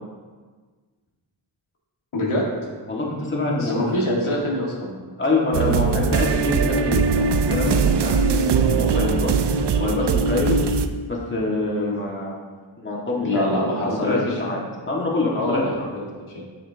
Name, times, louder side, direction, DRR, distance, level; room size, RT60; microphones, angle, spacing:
voice 1, 2.1-2.4 3.6-5.0 11.8-12.0 13.2-14.2 15.3-16.0 16.3-16.4, left 1 dB, 75° left, -4 dB, 2.0 m, -24 dB
voice 2, 2.9-3.8 5.2-10.6 11.1-12.4 12.8-14.6 14.9-15.9, left 2 dB, 25° left, -3 dB, 1.9 m, -26 dB
sound 1, 5.5-10.9, right 5 dB, 55° right, 0.6 m, -20 dB
8.4 x 6.9 x 2.9 m, 1.4 s
cardioid pair, 50°, 48 cm